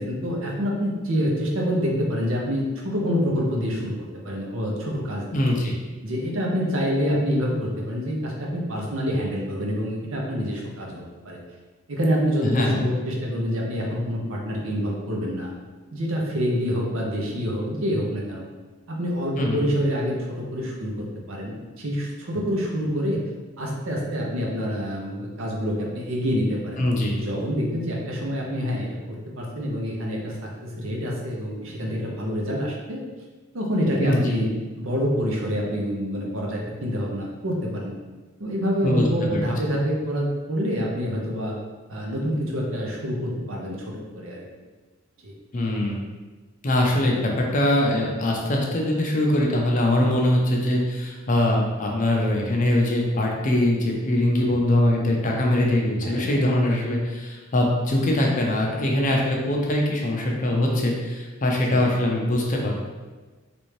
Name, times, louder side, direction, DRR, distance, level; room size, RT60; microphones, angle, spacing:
voice 1, 0.0-3.9 4.2-5.6 6.0-11.4 11.9-15.5 15.9-18.4 18.9-23.2 23.6-26.8 27.1-33.0 33.5-34.5 34.8-37.9 38.4-41.5 41.9-44.4 45.2-45.3 56.0-56.4 61.7-62.0, equal, 65° right, -2 dB, 0.7 m, -27 dB
voice 2, 5.3-5.7 12.4-12.8 19.4-19.6 26.8-27.1 34.0-34.2 38.8-39.4 45.5-46.0 46.6-62.8, left 1 dB, 35° left, 0 dB, 0.5 m, -22 dB
3.3 x 2.6 x 3.1 m, 1.3 s
head